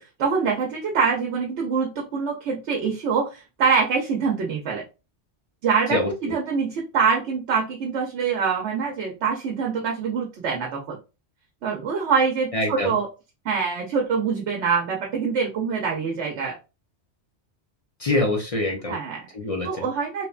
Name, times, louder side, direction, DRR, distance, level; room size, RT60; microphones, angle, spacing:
voice 1, 0.2-4.8 5.6-11.0 11.6-13.1 13.4-16.6 18.9-19.3 19.6-20.3, right 5 dB, 80° right, 0 dB, 1.0 m, -24 dB
voice 2, 12.5-12.9 18.0-19.0 19.3-19.9, left 2 dB, 40° left, 0 dB, 0.5 m, -24 dB
2.9 x 2.1 x 2.3 m, 0.29 s
omnidirectional pair, 1.2 m